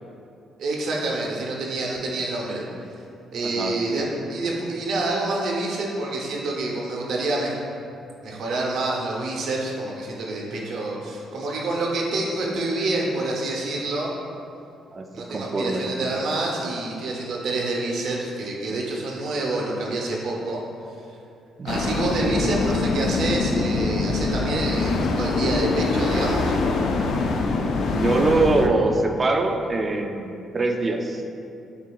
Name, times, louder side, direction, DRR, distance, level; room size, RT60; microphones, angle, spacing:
voice 1, 0.6-2.6 3.3-7.5 8.2-14.1 15.1-20.6 21.6-26.6, right 2 dB, 75° right, -2 dB, 0.7 m, -27 dB
voice 2, 3.4-4.1 14.9-16.0 21.6-21.9 27.9-31.2, right 2 dB, 35° right, 4 dB, 0.4 m, -24 dB
sound 1, 21.7-28.7, left 3 dB, 70° left, 0.3 m, -24 dB
6.6 x 2.8 x 2.3 m, 2.6 s
cardioid pair, 90°, 0 cm